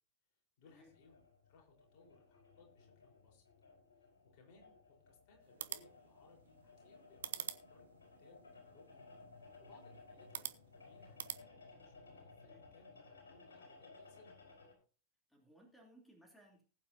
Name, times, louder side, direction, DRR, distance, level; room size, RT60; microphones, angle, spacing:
sound 1, 0.6-14.7, left 3 dB, 70° left, 4.9 m, -60 dB
voice 1, 0.6-3.4 3.9-4.7 5.1-9.1 9.4-14.4, left 3 dB, 45° left, 0 dB, 4.6 m, -66 dB
sound 2, 5.4-11.4, right 9 dB, 65° right, 0.8 m, -49 dB
voice 2, 15.3-16.6, right 1 dB, 5° left, 0 dB, 3.1 m, -63 dB
19.5 x 8.7 x 2.8 m, 0.37 s
figure-of-eight pair, 90°, 0 cm